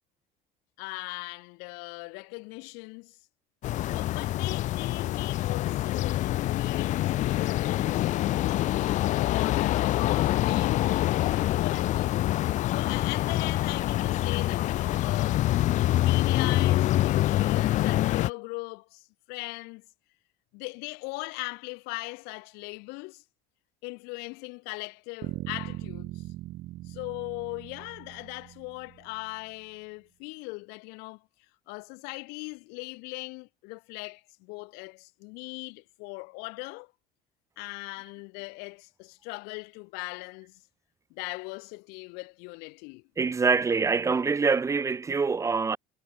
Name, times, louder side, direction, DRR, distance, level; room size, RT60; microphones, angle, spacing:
voice 1, 0.8-3.2 3.8-8.0 9.1-12.2 12.7-15.5 15.9-19.8 20.5-23.2 23.8-26.2 26.9-31.2 31.7-36.9 37.6-40.6 41.1-43.0, left 30 dB, 90° left, 2.0 m, -39 dB
sound 1, 3.6-18.3, left 15 dB, 50° left, 0.6 m, -26 dB
sound 2, 25.2-29.2, right 16 dB, 55° right, 0.8 m, -40 dB
voice 2, 43.2-45.8, right 4 dB, 20° right, 0.9 m, -25 dB
cardioid pair, 140°, 16 cm